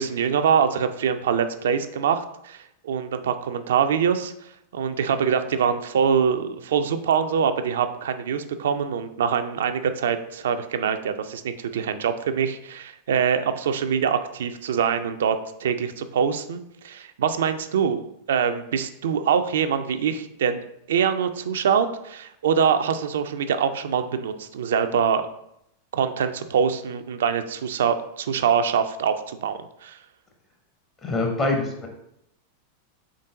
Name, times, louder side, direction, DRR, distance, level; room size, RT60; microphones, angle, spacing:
voice 1, 0.0-4.3 4.7-20.6 20.9-25.3 25.9-30.0, right 7 dB, 60° right, 9 dB, 0.3 m, -24 dB
voice 2, 31.0-31.9, left 2 dB, 25° left, 2 dB, 0.6 m, -24 dB
3.8 x 3.7 x 3.7 m, 0.79 s
figure-of-eight pair, 90°, 0 cm